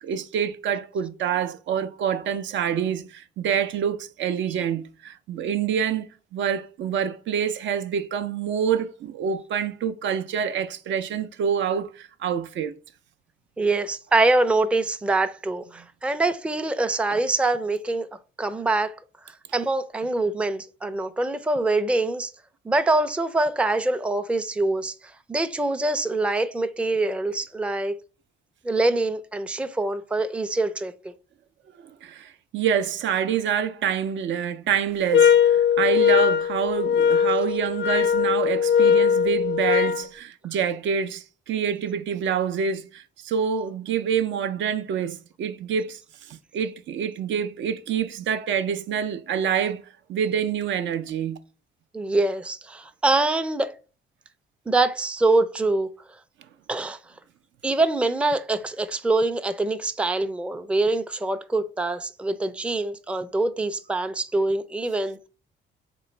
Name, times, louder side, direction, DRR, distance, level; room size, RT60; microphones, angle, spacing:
voice 1, 0.0-12.8 31.8-49.8 50.1-51.4, right 8 dB, 70° right, 0.5 m, -27 dB
voice 2, 13.6-18.1 18.4-18.9 19.3-22.3 22.6-27.9 28.6-31.1 51.9-53.7 54.7-55.9 56.7-57.0 57.6-65.3, right 2 dB, 5° right, 0.4 m, -24 dB
sound 1, 35.1-40.1, left 7 dB, 75° left, 0.5 m, -20 dB
3.9 x 3.0 x 4.2 m
cardioid pair, 90°, 20 cm